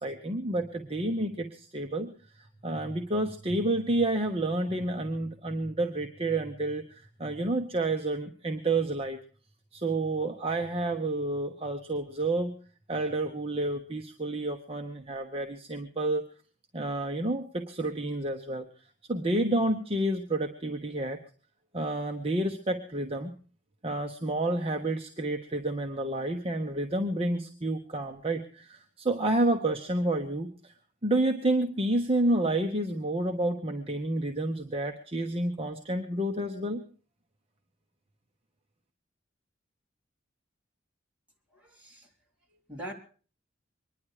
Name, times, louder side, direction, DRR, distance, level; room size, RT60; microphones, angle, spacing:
voice 1, 0.0-9.2 9.7-12.5 12.9-16.3 16.7-18.6 19.1-21.2 21.7-23.3 23.8-30.7 31.0-36.8, right 2 dB, 30° right, 3 dB, 1.1 m, -29 dB
voice 2, 41.5-42.1 42.5-42.9, right 1 dB, 10° right, -2 dB, 4.0 m, -43 dB
23.5 x 10.5 x 4.9 m, 0.41 s
head